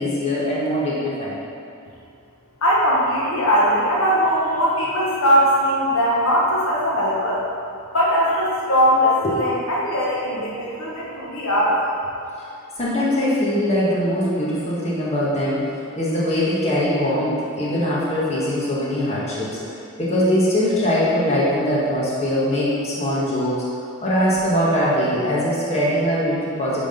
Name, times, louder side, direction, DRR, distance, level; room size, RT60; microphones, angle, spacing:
voice 1, 0.0-1.3 9.2-9.3 12.8-15.7 16.0-19.6 20.0-23.6 24.0-26.8, equal, 30° left, -7 dB, 1.5 m, -21 dB
voice 2, 2.6-7.4 7.9-11.8, equal, 65° left, -6 dB, 1.3 m, -20 dB
9.4 x 3.9 x 5.1 m, 2.5 s
head